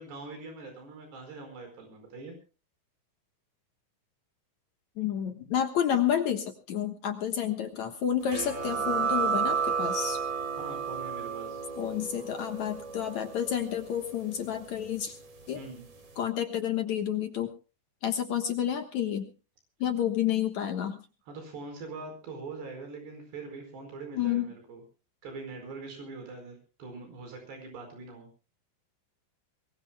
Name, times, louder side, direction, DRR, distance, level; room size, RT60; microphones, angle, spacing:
voice 1, 0.0-2.4 10.6-11.6 15.5-15.9 21.3-24.8 25.2-28.3, right 3 dB, 85° right, 4 dB, 6.9 m, -43 dB
voice 2, 5.0-10.2 11.8-15.2 15.5-15.6 16.2-17.5 18.0-19.3 19.8-21.0 24.1-24.5, left 9 dB, 60° left, 6 dB, 2.2 m, -30 dB
sound 1, 8.3-15.6, right 6 dB, 45° right, 4.4 m, -33 dB
23.0 x 21.5 x 2.2 m, 0.35 s
omnidirectional pair, 4.7 m